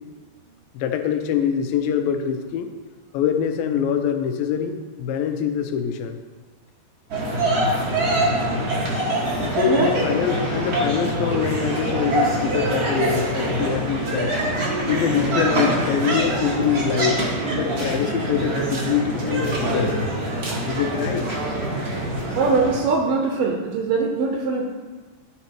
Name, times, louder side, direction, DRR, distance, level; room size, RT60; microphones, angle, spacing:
voice 1, 0.7-2.7 3.1-6.2 9.4-14.4 14.9-17.2 17.5-20.0 20.7-21.3, left 8 dB, 85° left, 6 dB, 2.4 m, -24 dB
sound 1, 7.1-22.8, right 1 dB, 60° right, 0.9 m, -24 dB
voice 2, 9.6-10.0 22.3-24.7, right 4 dB, 80° right, 1 dB, 2.3 m, -22 dB
12.0 x 4.2 x 4.4 m, 1.4 s
omnidirectional pair, 4.0 m